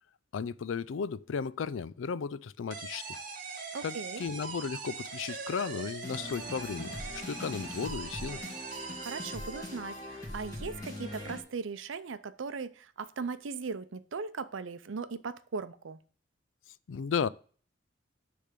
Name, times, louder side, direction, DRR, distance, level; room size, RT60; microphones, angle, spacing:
voice 1, 0.3-3.2 3.8-8.4 16.9-17.3, left 6 dB, 85° left, 0.4 m, -35 dB
sound 1, 2.7-10.1, right 5 dB, 45° right, 1.3 m, -42 dB
voice 2, 3.7-4.3 9.0-16.0, right 5 dB, 85° right, 0.6 m, -38 dB
sound 2, 6.0-11.4, left 1 dB, 20° left, 2.4 m, -42 dB
10.0 x 3.4 x 6.7 m
head